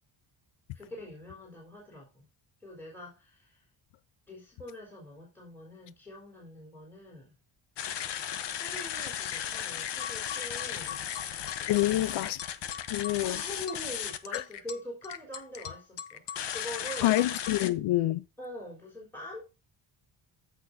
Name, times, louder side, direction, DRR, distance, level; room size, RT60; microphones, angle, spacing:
voice 1, 0.7-2.3 2.6-3.6 4.3-7.3 8.5-11.0 13.2-17.2 18.4-19.4, left 1 dB, 5° left, 3.9 m, -44 dB
sound 1, 7.8-17.7, left 9 dB, 60° left, 1.0 m, -36 dB
voice 2, 11.7-12.4 12.9-13.4 14.3-14.4 17.0-18.2, left 15 dB, 75° left, 0.7 m, -27 dB
14.5 x 5.9 x 2.7 m
cardioid pair, 155°, 48 cm